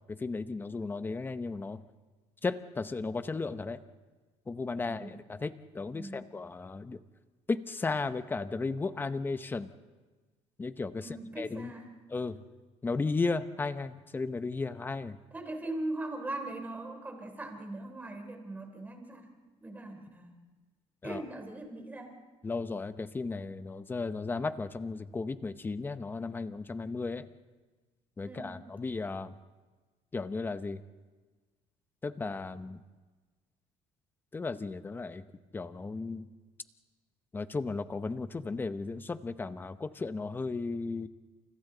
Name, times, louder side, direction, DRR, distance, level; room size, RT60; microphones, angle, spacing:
voice 1, 0.1-1.8 2.4-3.8 4.5-7.0 7.5-9.7 10.6-11.7 12.1-12.4 12.8-15.2 21.0-21.2 22.4-27.3 28.2-29.3 30.1-30.8 32.0-32.8 34.3-35.2 35.5-36.3 37.3-41.1, left 3 dB, 15° left, 12 dB, 0.8 m, -35 dB
voice 2, 4.8-5.1 5.9-6.3 11.0-11.9 15.3-19.3 19.6-20.4 21.0-22.2 28.2-28.6, right 2 dB, 15° right, 4 dB, 3.3 m, -40 dB
29.5 x 28.5 x 3.9 m, 1.3 s
cardioid pair, 145°, 12 cm